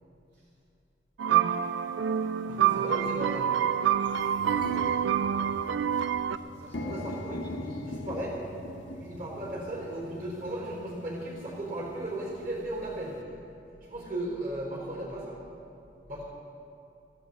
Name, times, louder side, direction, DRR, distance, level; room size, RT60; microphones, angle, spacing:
sound 1, 1.2-6.4, right 9 dB, 85° right, 0.4 m, -27 dB
sound 2, 1.6-1.7 2.5-2.7 3.1-3.2 3.5-13.2, left 1 dB, 85° left, 0.9 m, -42 dB
voice 1, 2.5-3.5 6.8-8.4 8.9-13.2 13.8-15.4 16.1-16.2, right 1 dB, 45° right, -3 dB, 4.2 m, -36 dB
voice 2, 4.4-7.2, equal, 70° right, -7 dB, 2.4 m, -55 dB
16.0 x 14.5 x 4.1 m, 2.6 s
head